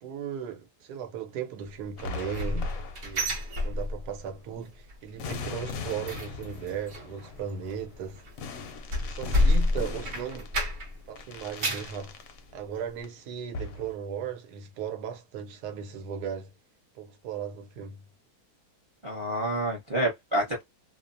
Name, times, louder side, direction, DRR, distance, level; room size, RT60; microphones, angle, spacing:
voice 1, 0.0-2.7 3.0-3.4 3.6-8.2 9.0-10.5 11.1-12.1 12.5-16.5 17.0-18.0, right 8 dB, 80° right, 1.2 m, -37 dB
sound 1, 2.0-3.4 5.2-12.4 12.9-13.2 13.5-13.9, left 4 dB, 70° left, 0.8 m, -40 dB
sound 2, 2.0-4.3 4.6-5.0 5.2-11.0 11.4-12.0 12.5-12.6 13.0-13.1, left 1 dB, 55° right, 0.9 m, -29 dB
voice 2, 19.0-20.6, right 1 dB, 30° right, 0.5 m, -28 dB
2.8 x 2.1 x 2.5 m
omnidirectional pair, 1.7 m